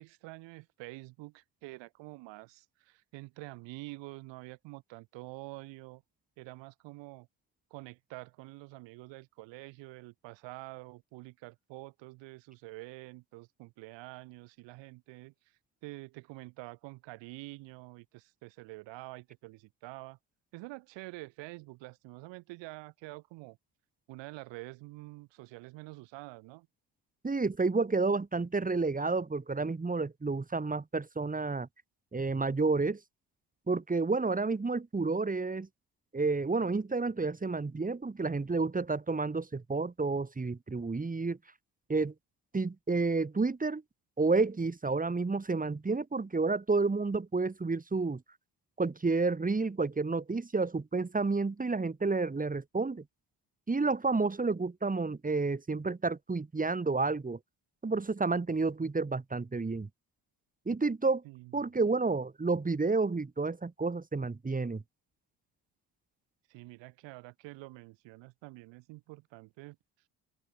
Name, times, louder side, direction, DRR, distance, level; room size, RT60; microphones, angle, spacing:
voice 1, 0.0-6.0 6.4-7.3 7.7-20.2 20.5-23.6 24.1-26.7 61.2-61.5 66.5-69.8, right 22 dB, 80° right, 6.8 m, -47 dB
voice 2, 27.2-31.7 32.1-33.0 33.7-35.7 36.1-41.4 41.9-42.1 42.5-43.8 44.2-48.2 48.8-53.0 53.7-57.4 57.8-59.9 60.6-61.2 61.5-64.8, right 3 dB, 20° right, 1.7 m, -30 dB
open air
supercardioid pair, 60°, 43 cm